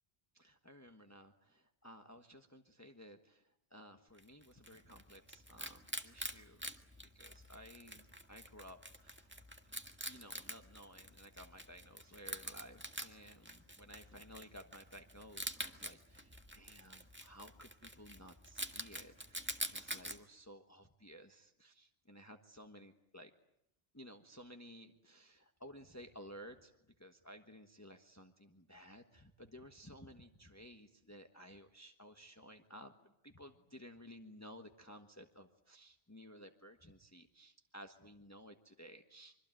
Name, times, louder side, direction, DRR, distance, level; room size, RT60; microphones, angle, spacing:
voice 1, 0.3-6.6 7.1-9.4 10.1-23.3 23.9-26.7 27.0-39.3, equal, 15° left, 5 dB, 1.4 m, -56 dB
Wild animals, 4.2-20.2, right 1 dB, 10° right, 1.7 m, -47 dB
25.5 x 24.5 x 9.1 m, 0.82 s
omnidirectional pair, 1.0 m